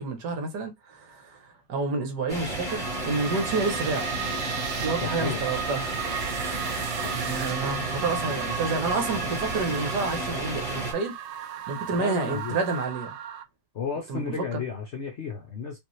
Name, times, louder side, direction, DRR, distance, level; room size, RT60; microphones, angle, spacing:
voice 1, 0.0-1.4 1.7-4.1 4.8-5.9 7.1-11.1 11.7-13.1 14.1-14.6, right 3 dB, 70° right, 1.6 m, -29 dB
sound 1, 2.3-10.9, right 1 dB, 25° right, 2.3 m, -32 dB
sound 2, 2.7-13.4, right 9 dB, 90° right, 1.3 m, -35 dB
voice 2, 5.0-5.4 7.0-7.2 12.0-12.6 13.7-15.8, left 6 dB, 60° left, 0.7 m, -33 dB
5.1 x 2.6 x 3.1 m
omnidirectional pair, 1.9 m